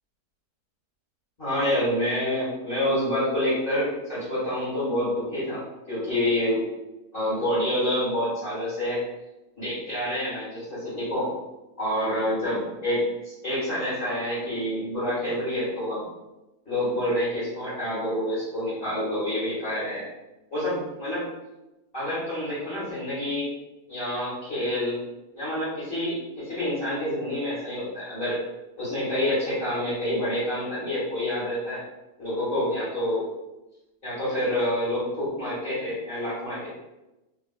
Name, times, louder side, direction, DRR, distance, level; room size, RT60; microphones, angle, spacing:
voice 1, 1.4-6.6 7.1-9.0 9.6-11.3 11.8-16.0 16.6-20.1 20.5-21.2 21.9-23.5 23.9-25.0 25.3-28.4 28.8-31.8 32.2-33.3 34.0-36.7, left 1 dB, 40° left, -12 dB, 1.3 m, -27 dB
3.3 x 2.4 x 2.2 m, 1.0 s
omnidirectional pair, 1.6 m